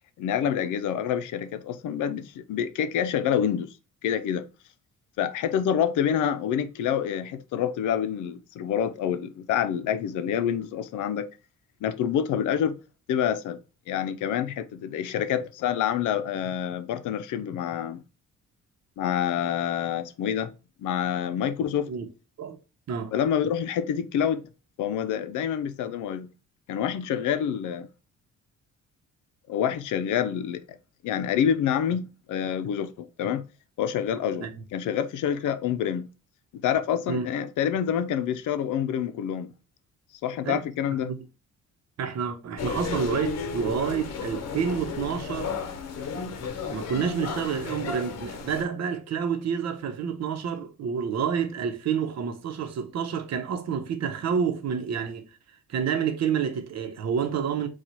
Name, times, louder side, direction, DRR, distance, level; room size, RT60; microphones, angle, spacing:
voice 1, 0.2-3.7 4.0-4.4 5.2-11.3 11.8-12.8 13.1-13.6 13.9-18.0 19.0-20.5 20.8-21.9 23.1-24.4 24.8-26.3 26.7-27.9 29.5-30.6 31.0-33.4 33.8-36.1 36.5-39.5 40.2-41.1, left 9 dB, 80° left, 0.6 m, -27 dB
voice 2, 42.0-45.5 46.7-55.2 55.7-57.7, right 7 dB, 60° right, 0.9 m, -29 dB
sound 1, 42.6-48.6, left 5 dB, 60° left, 0.9 m, -33 dB
4.4 x 2.4 x 4.0 m
cardioid pair, 90°, 30 cm